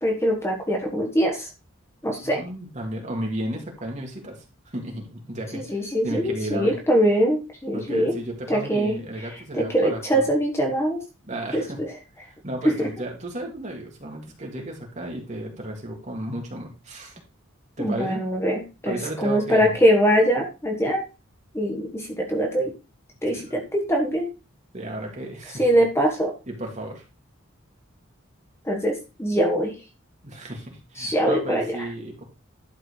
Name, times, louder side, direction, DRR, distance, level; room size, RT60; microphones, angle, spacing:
voice 1, 0.0-1.5 2.0-2.4 5.5-8.2 8.5-8.9 9.5-11.0 11.5-11.9 12.8-12.9 17.8-21.0 21.5-22.7 23.2-24.3 25.6-26.3 28.6-29.7 31.0-31.8, equal, 10° left, 2 dB, 1.4 m, -23 dB
voice 2, 2.2-5.8 6.0-6.7 7.7-10.2 11.2-11.8 12.4-17.2 17.8-18.2 18.9-19.8 23.3-23.6 24.7-25.6 26.5-27.0 30.2-32.2, right 1 dB, 35° right, 0 dB, 2.7 m, -33 dB
11.5 x 4.7 x 4.9 m, 0.30 s
head